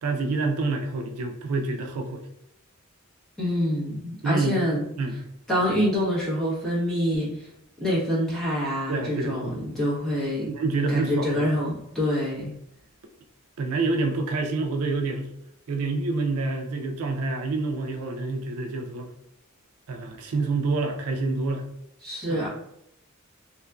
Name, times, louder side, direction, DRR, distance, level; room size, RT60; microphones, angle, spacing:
voice 1, 0.0-2.3 4.2-4.6 5.0-5.2 8.9-9.6 10.5-11.5 13.6-15.3 15.7-19.1 19.9-21.6 22.3-22.4, right 3 dB, 85° right, 3 dB, 0.4 m, -27 dB
voice 2, 3.4-4.8 5.5-7.3 7.8-10.5 10.9-12.5 22.0-22.5, equal, ahead, -8 dB, 1.0 m, -26 dB
2.9 x 2.4 x 2.2 m, 0.76 s
head